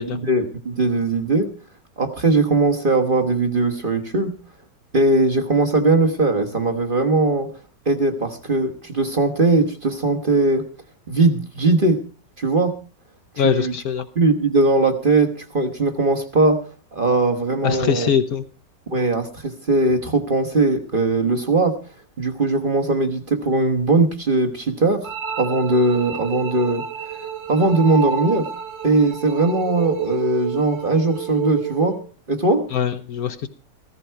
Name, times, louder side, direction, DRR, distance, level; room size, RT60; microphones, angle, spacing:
voice 1, 0.0-1.5 2.0-4.3 4.9-7.5 7.8-10.6 11.1-12.0 12.4-12.8 13.4-13.7 14.1-16.6 16.9-18.1 18.9-21.8 22.2-26.8 27.5-28.5 28.8-32.0 32.3-32.6, right 2 dB, 35° right, 5 dB, 1.2 m, -19 dB
voice 2, 13.4-14.1 17.6-18.4 32.7-33.5, left 8 dB, 60° left, 9 dB, 1.2 m, -22 dB
sound 1, 25.0-32.0, right 7 dB, 50° right, 1.2 m, -30 dB
15.5 x 14.0 x 4.5 m, 0.38 s
omnidirectional pair, 1.9 m